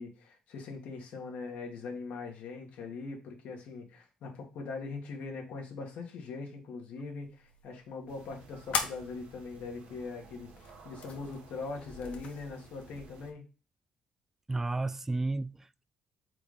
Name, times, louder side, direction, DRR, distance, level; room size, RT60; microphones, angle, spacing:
voice 1, 0.0-13.4, left 4 dB, 85° left, 1.8 m, -41 dB
sound 1, 7.2-13.1, left 5 dB, 65° left, 1.3 m, -41 dB
sound 2, 8.1-13.3, right 4 dB, 80° right, 1.3 m, -55 dB
voice 2, 14.5-15.8, right 2 dB, 15° right, 0.3 m, -32 dB
4.8 x 4.0 x 5.0 m
cardioid pair, 120°, 2 cm